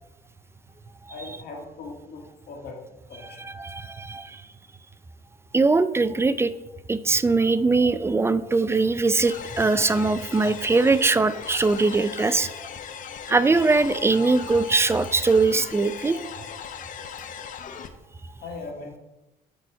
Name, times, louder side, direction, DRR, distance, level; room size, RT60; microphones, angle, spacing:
voice 1, 1.1-2.8 3.1-3.4 18.4-19.0, left 3 dB, 70° left, 0 dB, 2.3 m, -39 dB
voice 2, 3.4-4.4 5.5-6.5 6.9-12.7 13.3-16.2, right 3 dB, 15° right, 14 dB, 0.3 m, -21 dB
sound 1, 9.2-17.9, left 7 dB, 50° left, 0.7 m, -38 dB
9.7 x 4.1 x 4.6 m, 0.97 s
cardioid pair, 110°, 17 cm